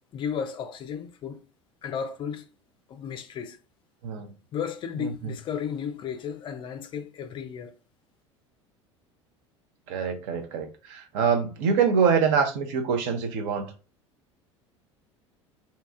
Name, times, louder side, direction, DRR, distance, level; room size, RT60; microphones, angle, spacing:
voice 1, 0.1-1.4 1.8-2.5 2.9-3.6 4.5-7.7, left 7 dB, 35° left, 0.4 m, -34 dB
voice 2, 9.9-13.7, right 6 dB, 55° right, 0.7 m, -25 dB
2.8 x 2.4 x 3.5 m
figure-of-eight pair, 70°, 16 cm